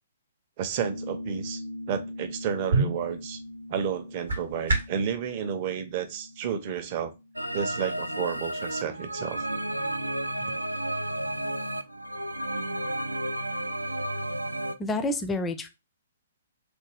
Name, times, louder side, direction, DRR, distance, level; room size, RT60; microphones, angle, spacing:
voice 1, 0.6-1.6 1.9-3.4 3.7-7.1 7.5-9.4, right 8 dB, 35° right, 9 dB, 0.5 m, -31 dB
sound 1, 0.8-7.7, left 1 dB, 60° left, 0.6 m, -42 dB
sound 2, 2.2-5.1, right 3 dB, 65° right, 0.8 m, -29 dB
sound 3, 7.4-14.8, right 1 dB, 85° right, 0.3 m, -32 dB
voice 2, 14.8-15.7, left 2 dB, 10° left, 8 dB, 0.4 m, -28 dB
3.4 x 2.2 x 3.3 m, 0.25 s
figure-of-eight pair, 120°, 0 cm